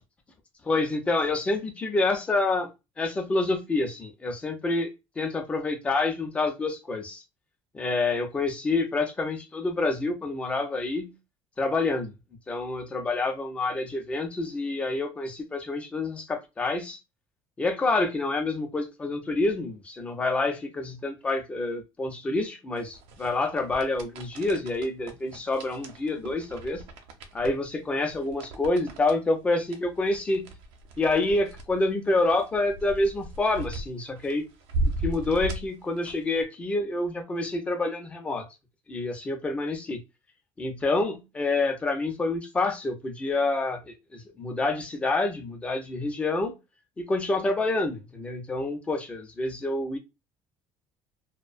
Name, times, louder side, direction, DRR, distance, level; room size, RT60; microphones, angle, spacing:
voice 1, 0.7-2.7 3.0-4.9 5.2-7.2 7.7-11.1 11.6-12.1 12.5-17.0 17.6-26.8 27.3-30.5 31.0-34.5 35.0-38.5 38.9-40.0 40.6-46.5 47.0-50.0, left 2 dB, 15° left, 0.5 m, -27 dB
sound 1, 22.8-36.4, right 2 dB, 85° right, 0.6 m, -37 dB
2.5 x 2.1 x 2.4 m
cardioid pair, 170°, 9 cm